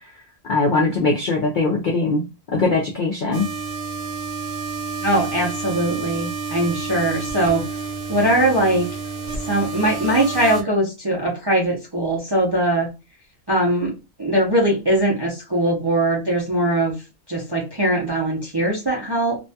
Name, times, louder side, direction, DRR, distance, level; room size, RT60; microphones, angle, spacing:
voice 1, 0.5-2.2 2.5-3.5, left 3 dB, 65° left, -1 dB, 0.5 m, -20 dB
sound 1, 3.3-10.6, right 4 dB, 50° right, 0.9 m, -30 dB
voice 2, 5.0-7.6 8.1-8.9 9.4-12.9 13.5-13.9 14.2-16.9 17.3-19.4, right 1 dB, 30° right, -3 dB, 0.4 m, -21 dB
2.6 x 2.2 x 2.6 m, 0.28 s
omnidirectional pair, 1.4 m